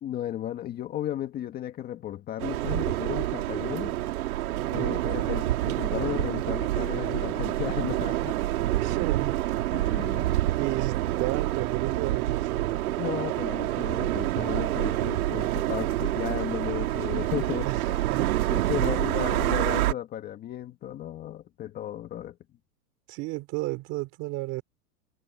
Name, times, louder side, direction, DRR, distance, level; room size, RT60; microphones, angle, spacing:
voice 1, 0.0-4.0 4.7-8.4 9.7-10.3 13.0-18.0 18.5-22.4, left 12 dB, 20° left, 1.8 m, -34 dB
sound 1, 2.4-19.9, right 15 dB, 65° right, 2.8 m, -27 dB
voice 2, 4.8-5.3 8.8-9.4 10.2-12.8 15.3-15.4 17.6-18.3 18.8-19.1 23.1-24.6, right 21 dB, 30° right, 3.5 m, -33 dB
supercardioid pair, 165°, 46 cm